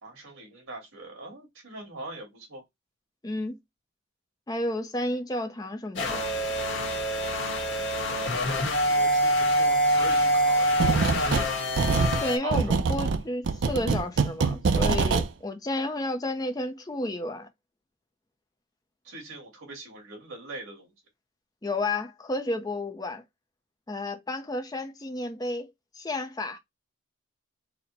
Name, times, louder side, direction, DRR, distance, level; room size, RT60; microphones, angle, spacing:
voice 1, 0.0-2.6 7.7-11.6 12.4-12.7 19.0-20.9, right 2 dB, 80° right, 2.0 m, -42 dB
voice 2, 3.2-3.6 4.5-6.2 12.2-17.5 21.6-23.2 23.9-26.6, left 1 dB, 20° left, 0.5 m, -31 dB
sound 1, 6.0-12.4, equal, 55° left, 1.0 m, -25 dB
sound 2, 10.8-11.5 11.8-15.3, right 4 dB, 60° right, 0.4 m, -24 dB
4.2 x 2.1 x 3.9 m
head